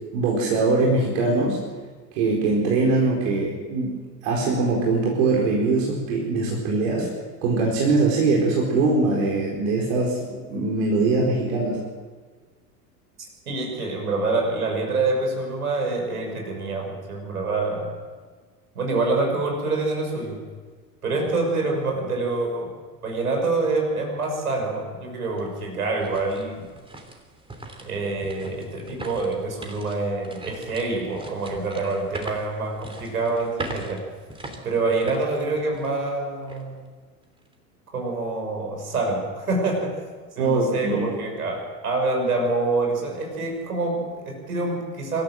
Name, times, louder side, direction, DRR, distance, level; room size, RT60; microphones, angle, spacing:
voice 1, 0.1-1.6 2.1-7.1 7.4-11.8 40.4-41.1, right 3 dB, 55° right, -2 dB, 4.6 m, -22 dB
voice 2, 13.5-17.9 18.7-20.4 21.0-22.7 23.0-26.7 27.8-34.0 34.6-36.8 37.9-39.9 40.3-45.2, right 3 dB, 75° right, 2 dB, 6.2 m, -26 dB
sound 1, 25.2-36.1 36.5-36.6 37.2-37.5, right 2 dB, 10° right, 3.1 m, -41 dB
25.0 x 14.0 x 7.8 m, 1.5 s
figure-of-eight pair, 80°, 46 cm